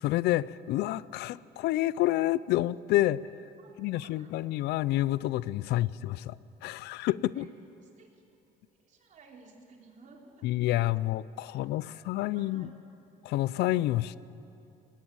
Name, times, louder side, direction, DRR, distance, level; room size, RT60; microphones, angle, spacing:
voice 1, 0.0-3.2 3.8-7.5 10.4-12.7 13.2-14.2, left 15 dB, 80° left, 20 dB, 0.5 m, -29 dB
voice 2, 3.6-4.3 5.7-5.9 7.3-7.5 8.0-8.2 8.8-10.5 11.5-12.7, right 4 dB, 50° right, 1 dB, 3.5 m, -57 dB
19.0 x 17.5 x 8.7 m, 2.7 s
cardioid pair, 110°, 17 cm